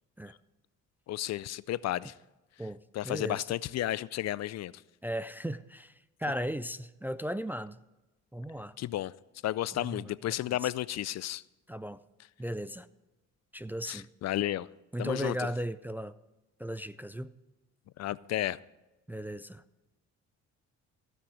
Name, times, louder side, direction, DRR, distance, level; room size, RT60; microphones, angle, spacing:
voice 1, 1.1-2.1 2.9-4.8 8.8-9.1 9.4-11.4 13.9-14.7 15.0-15.5 18.0-18.6, left 14 dB, 60° left, 0.4 m, -32 dB
voice 2, 2.6-3.5 5.0-7.8 8.3-8.8 9.7-10.1 10.5-10.7 11.7-12.0 12.4-12.9 13.5-14.1 14.9-16.2 16.6-17.3 19.1-19.6, equal, 5° right, 0.3 m, -36 dB
16.0 x 6.2 x 6.3 m
cardioid pair, 90°, 30 cm